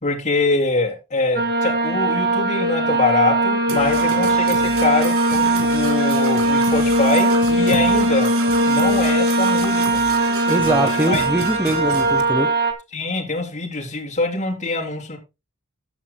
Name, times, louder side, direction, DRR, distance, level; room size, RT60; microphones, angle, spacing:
voice 1, 0.0-8.3 8.7-10.0 10.8-11.2 12.9-15.2, left 3 dB, 35° left, 3.6 m, -23 dB
sound 1, 1.4-12.7, right 2 dB, 50° right, 2.4 m, -19 dB
Percussion / Brass instrument, 3.7-12.2, right 4 dB, 70° right, 2.3 m, -31 dB
voice 2, 10.5-12.5, right 1 dB, 10° right, 0.9 m, -22 dB
14.0 x 11.5 x 2.2 m
head